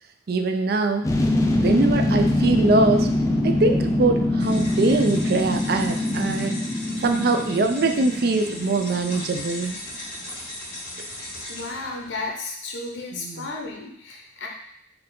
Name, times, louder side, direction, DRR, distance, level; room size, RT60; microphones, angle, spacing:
voice 1, 0.3-1.1 1.6-3.1 3.4-6.6 7.0-9.8 13.1-13.5, right 3 dB, 55° right, 6 dB, 0.4 m, -22 dB
sound 1, 1.0-9.6 9.9-10.0, left 1 dB, 15° left, 0.4 m, -24 dB
sound 2, 4.4-12.3, left 1 dB, 35° left, 1.7 m, -37 dB
voice 2, 11.5-14.5, left 3 dB, 80° left, 0 dB, 0.8 m, -33 dB
4.4 x 2.7 x 3.6 m, 0.70 s
head